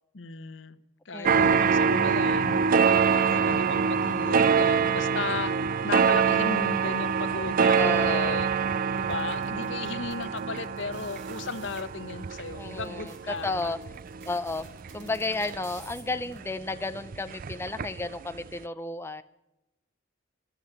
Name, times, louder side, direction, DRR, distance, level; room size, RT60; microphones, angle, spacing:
voice 1, 0.1-0.8 1.0-2.6 3.1-5.6 5.8-8.5 9.0-13.7, left 4 dB, 70° left, 13 dB, 1.0 m, -35 dB
voice 2, 1.1-1.7 7.8-8.4 12.6-13.8 14.2-14.7 14.9-19.2, left 2 dB, 15° left, 10 dB, 0.5 m, -33 dB
sound 1, 1.3-16.4 16.7-18.1 18.4-18.5, right 6 dB, 45° right, 0.4 m, -25 dB
sound 2, 9.0-11.8 12.5-12.6 12.8-16.4, right 4 dB, 70° right, 3.8 m, -51 dB
15.0 x 11.5 x 7.1 m, 0.94 s
head